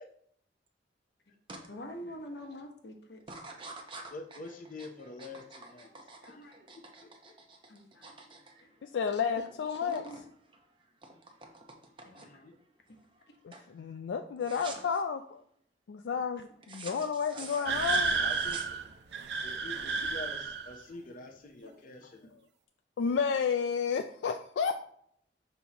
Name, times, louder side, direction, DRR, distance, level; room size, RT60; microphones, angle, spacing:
sound 1, 1.5-1.7 2.1-2.5 3.2-9.3 9.5-10.2 10.5-12.5 13.0-13.3 13.5-13.7 14.4-15.0 16.6-19.1, right 3 dB, 30° right, 0.7 m, -48 dB
voice 1, 1.7-3.4 6.2-6.7 7.7-8.1 8.6-8.7 9.1-10.2 12.0-12.4 13.3-13.4 21.6-22.1, equal, 70° left, 3 dB, 1.1 m, -47 dB
voice 2, 4.1-5.9 6.3-6.5 7.0-7.1 12.1-12.5 17.3-17.7 18.2-18.6 19.4-22.3, left 2 dB, 50° left, 3 dB, 0.6 m, -46 dB
voice 3, 8.8-10.0 13.4-15.4 15.9-18.2 23.0-24.8, left 6 dB, 85° left, 6 dB, 0.3 m, -31 dB
sound 2, 17.7-20.8, right 4 dB, 65° right, 0.6 m, -31 dB
6.2 x 5.3 x 2.9 m, 0.67 s
head